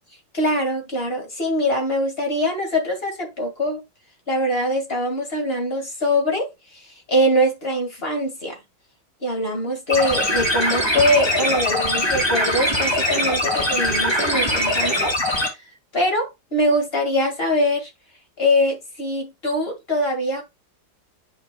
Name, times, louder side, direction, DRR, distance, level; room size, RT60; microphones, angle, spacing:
voice 1, 0.3-3.8 4.3-8.6 9.2-15.1 15.4-15.6 15.9-17.9 18.4-20.4, left 1 dB, 30° left, 2.1 m, -23 dB
sound 1, 9.9-15.5, left 1 dB, 15° left, 1.8 m, -22 dB
9.4 x 5.5 x 2.3 m
omnidirectional pair, 2.1 m